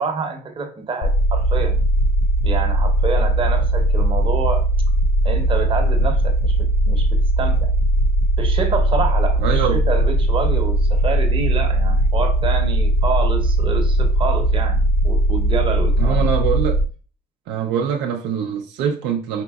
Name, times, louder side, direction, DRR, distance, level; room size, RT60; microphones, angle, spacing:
voice 1, 0.0-1.8 2.4-4.7 5.2-7.7 8.4-16.3, right 4 dB, 30° right, 3 dB, 0.8 m, -27 dB
sound 1, 1.0-16.9, right 1 dB, 45° left, 0.4 m, -18 dB
voice 2, 9.4-9.8 16.0-16.8 17.5-19.4, right 7 dB, 85° right, 2 dB, 0.5 m, -23 dB
4.4 x 3.9 x 2.3 m, 0.39 s
cardioid pair, 110°, 17 cm